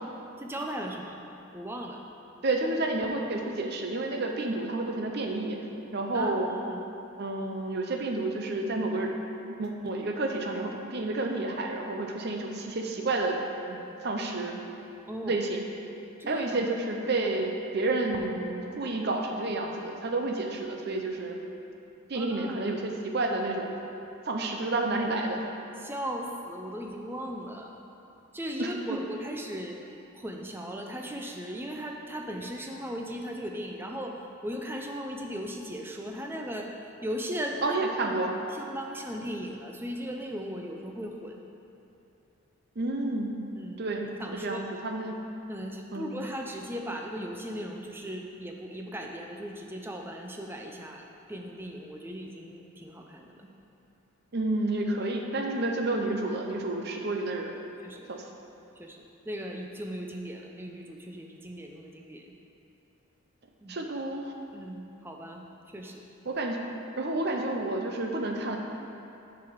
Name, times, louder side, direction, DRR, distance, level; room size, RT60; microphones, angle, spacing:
voice 1, 0.4-1.2 1.5-2.0 6.1-6.8 15.0-15.4 16.2-16.7 22.1-22.6 25.8-27.8 28.3-29.8 30.1-36.7 37.0-37.8 38.0-38.1 38.5-41.4 43.6-43.8 44.2-44.6 45.5-53.5 57.8-58.1 58.8-62.3 63.6-63.7 64.5-66.0, equal, 10° right, 1 dB, 0.5 m, -37 dB
voice 2, 2.4-5.6 5.9-6.5 7.2-9.1 9.6-13.4 13.7-14.6 15.2-15.6 16.3-21.4 22.1-23.7 24.2-25.4 28.6-29.0 37.6-38.3 42.8-43.4 43.8-45.2 45.9-46.2 54.3-57.6 58.1-58.2 63.7-64.3 66.3-66.6 67.0-68.6, right 2 dB, 50° right, 2 dB, 0.7 m, -30 dB
6.8 x 4.9 x 6.4 m, 2.8 s
head